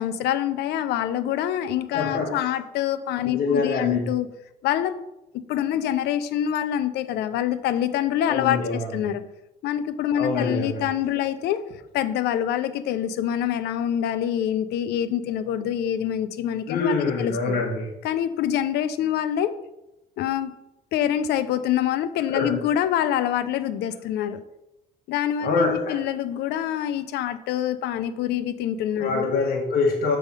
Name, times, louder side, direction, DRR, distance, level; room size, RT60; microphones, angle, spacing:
voice 1, 0.0-4.3 4.6-5.0 5.3-9.2 9.6-11.6 11.9-17.6 18.0-19.5 20.2-20.5 20.9-24.4 25.1-29.4, left 10 dB, 80° left, 12 dB, 0.6 m, -25 dB
voice 2, 1.9-2.5 3.2-4.1 8.2-8.9 10.1-10.9 16.7-17.9 22.3-22.6 25.4-26.0 29.0-30.2, left 3 dB, 60° left, 0 dB, 1.3 m, -25 dB
7.3 x 3.5 x 5.4 m, 0.90 s
cardioid pair, 110°, 17 cm